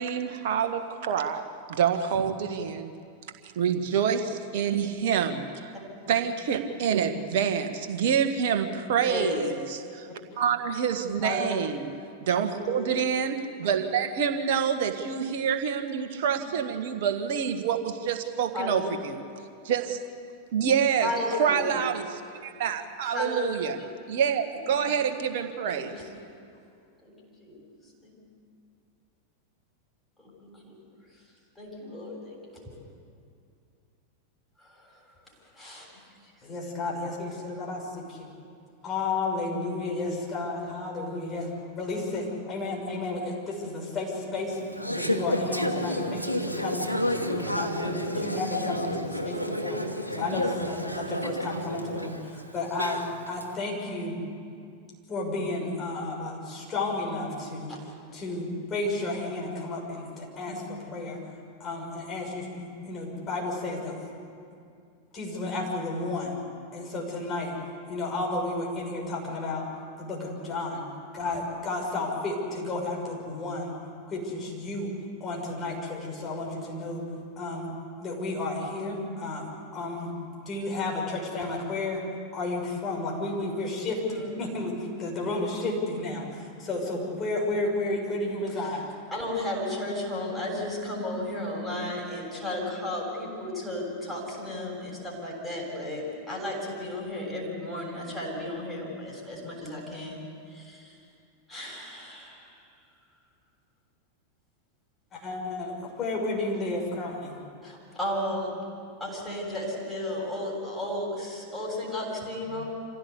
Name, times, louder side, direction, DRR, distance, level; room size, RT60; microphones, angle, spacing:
voice 1, 0.0-1.4 1.7-2.9 3.6-5.7 6.1-10.1 10.4-11.9 12.2-19.2 19.6-20.0 20.5-21.1 21.4-23.8 24.1-25.9, right 7 dB, 50° right, 6 dB, 1.6 m, -27 dB
voice 2, 9.0-9.4 11.2-11.5 12.6-12.9 18.5-18.9 21.0-21.8 23.0-23.4 23.8-23.9 24.7-24.8 25.6-26.2 27.0-27.6 28.0-28.2 30.2-30.8 31.6-32.7 34.6-35.0 35.6-36.0 54.1-54.2 57.7-57.8 60.4-60.7 78.8-78.9 84.1-84.3 85.9-86.0 88.5-88.8 89.1-101.0 101.5-102.6 107.6-108.5 109.0-112.6, left 1 dB, 10° left, -4 dB, 7.2 m, -34 dB
voice 3, 36.4-38.3 38.8-44.6 44.9-49.8 50.1-53.0 53.3-54.1 55.1-57.7 58.1-61.2 61.6-64.0 65.1-66.4 66.7-67.5 67.9-69.7 70.0-70.8 71.1-73.8 74.1-74.9 75.2-77.0 77.4-77.7 78.0-79.5 79.7-80.1 80.5-82.0 82.3-84.7 85.0-86.2 86.6-88.8 105.1-107.4, left 2 dB, 25° left, -2 dB, 6.3 m, -32 dB
Conversation / Chatter, 44.5-53.4, equal, 90° right, 1.3 m, -31 dB
26.0 x 16.0 x 8.3 m, 2.4 s
figure-of-eight pair, 90°, 0 cm